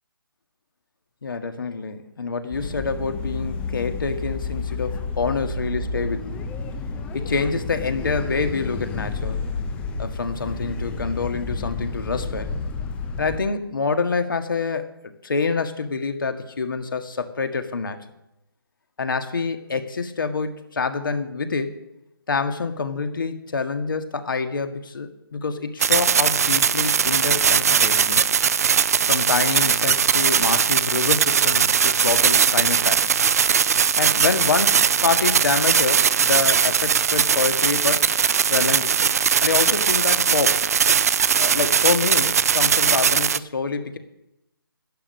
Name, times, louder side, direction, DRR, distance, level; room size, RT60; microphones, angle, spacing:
voice 1, 1.2-6.4 7.1-9.4 10.0-12.5 13.2-18.0 19.0-21.7 22.3-28.3 29.1-33.1 34.0-38.1 38.5-39.1 39.4-40.6 41.4-44.0, left 4 dB, 60° left, 7 dB, 1.7 m, -26 dB
sound 1, 2.5-13.4, left 4 dB, 10° left, 0.7 m, -30 dB
sound 2, 25.8-43.4, right 7 dB, 40° right, 0.4 m, -19 dB
11.5 x 11.5 x 6.4 m, 0.85 s
figure-of-eight pair, 150°, 12 cm